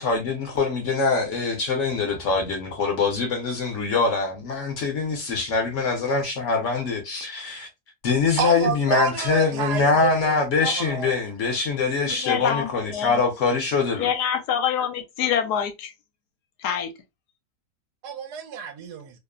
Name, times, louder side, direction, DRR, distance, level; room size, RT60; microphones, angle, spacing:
voice 1, 0.0-7.7 8.0-14.1, left 4 dB, 60° left, 0.9 m, -24 dB
voice 2, 8.4-10.4 10.6-11.1 18.0-19.1, right 7 dB, 75° right, 1.1 m, -29 dB
voice 3, 12.1-13.2 14.0-15.9 16.6-16.9, left 8 dB, 75° left, 1.1 m, -26 dB
2.8 x 2.0 x 2.3 m
omnidirectional pair, 1.8 m